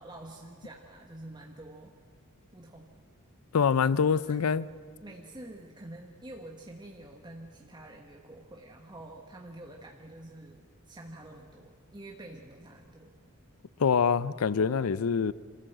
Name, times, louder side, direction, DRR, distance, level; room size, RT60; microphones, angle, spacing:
voice 1, 0.0-1.9 2.5-3.0 4.1-4.4 5.0-13.1 14.7-14.9, right 1 dB, 20° right, 1 dB, 1.2 m, -47 dB
voice 2, 3.5-4.7 13.8-15.3, left 6 dB, 75° left, 19 dB, 0.5 m, -25 dB
26.5 x 14.0 x 7.8 m, 2.2 s
head